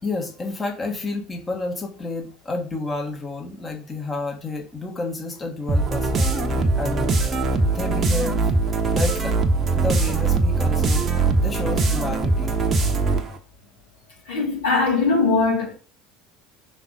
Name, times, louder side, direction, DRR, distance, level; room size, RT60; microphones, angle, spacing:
voice 1, 0.0-7.1 7.6-8.5 8.9-9.4 9.7-12.5, left 3 dB, 20° left, 1.5 m, -30 dB
sound 1, 5.7-13.4, right 3 dB, 30° right, 0.9 m, -21 dB
voice 2, 14.3-15.7, left 4 dB, 65° left, 1.9 m, -20 dB
5.7 x 4.0 x 5.2 m
figure-of-eight pair, 70°, 0 cm